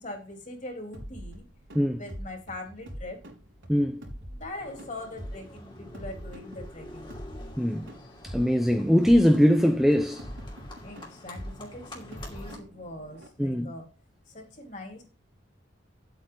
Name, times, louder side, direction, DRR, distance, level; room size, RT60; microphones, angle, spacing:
voice 1, 0.0-1.4 2.0-3.2 4.3-7.1 10.8-13.9 14.3-15.0, left 1 dB, 40° left, 3.6 m, -41 dB
sound 1, 0.9-13.3, equal, 85° right, 3.9 m, -43 dB
voice 2, 3.7-4.0 7.6-7.9 8.2-10.3 13.4-13.7, equal, ahead, 0.7 m, -22 dB
Livestock farm animals working animals, 4.5-12.6, left 1 dB, 25° left, 2.6 m, -47 dB
10.5 x 8.4 x 4.0 m
head